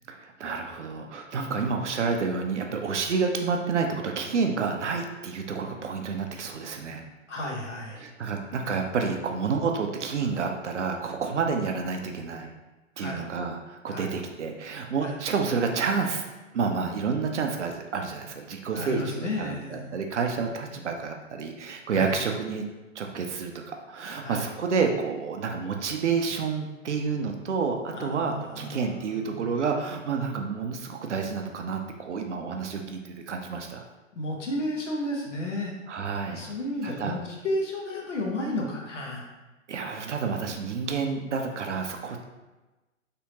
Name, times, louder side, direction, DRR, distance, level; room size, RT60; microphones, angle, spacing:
voice 1, 0.1-7.0 8.0-12.5 13.0-16.2 16.5-22.6 23.0-33.8 35.9-36.5 36.8-37.2 39.7-42.2, right 5 dB, 60° right, 3 dB, 0.5 m, -29 dB
voice 2, 7.3-8.1 13.0-13.2 13.9-14.1 15.0-15.2 18.7-20.0 21.9-22.2 24.2-24.5 27.9-29.4 34.2-35.7 36.3-37.2 37.4-39.3, left 1 dB, 60° left, -1 dB, 1.0 m, -32 dB
3.4 x 2.8 x 2.8 m, 1.1 s
figure-of-eight pair, 120°, 40 cm